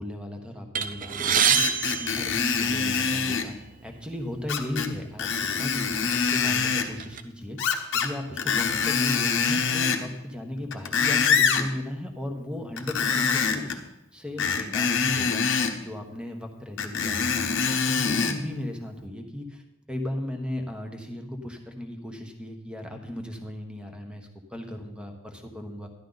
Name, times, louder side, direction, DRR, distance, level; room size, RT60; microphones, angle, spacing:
voice 1, 0.0-1.6 2.0-3.6 3.8-7.6 7.9-13.8 14.1-15.5 15.8-17.4 17.9-19.6 19.9-25.9, left 1 dB, 5° right, 4 dB, 1.2 m, -36 dB
sound 1, 0.7-3.1 3.9-4.0 4.4-4.5 5.4-5.6 6.0-7.2, right 7 dB, 40° right, 0.6 m, -26 dB
Screech, 1.6-3.5 4.5-4.9 5.2-6.9 7.6-8.1 8.4-10.1 10.6-11.7 12.8-13.8 14.4-15.7 16.8-18.4 19.0-19.1, left 6 dB, 60° left, 1.0 m, -25 dB
12.0 x 11.0 x 4.0 m, 0.90 s
head